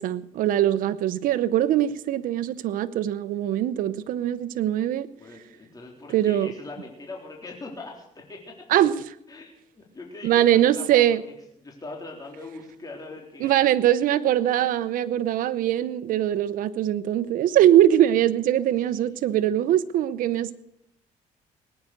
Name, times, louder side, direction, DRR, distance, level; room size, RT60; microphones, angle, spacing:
voice 1, 0.0-5.1 6.1-6.5 8.7-8.9 10.2-11.2 13.4-20.5, right 12 dB, 80° right, 14 dB, 0.8 m, -22 dB
voice 2, 5.2-8.4 8.7-8.8 9.3-13.6 19.0-19.6, left 3 dB, 25° left, -1 dB, 3.7 m, -42 dB
19.5 x 9.7 x 6.7 m, 0.76 s
cardioid pair, 100°, 14 cm